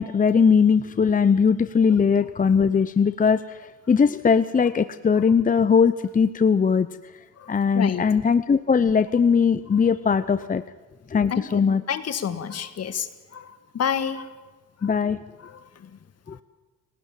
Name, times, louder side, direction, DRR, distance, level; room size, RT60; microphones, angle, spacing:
voice 1, 0.0-6.9 7.5-10.6 11.1-11.8 14.8-15.2 16.3-16.4, left 6 dB, 25° left, 13 dB, 0.7 m, -20 dB
voice 2, 7.4-8.1 9.7-9.8 11.3-14.4 14.8-14.9 15.4-16.0 16.3-16.4, left 7 dB, 55° left, 11 dB, 2.0 m, -30 dB
29.5 x 18.5 x 7.5 m, 1.2 s
cardioid pair, 90°, 30 cm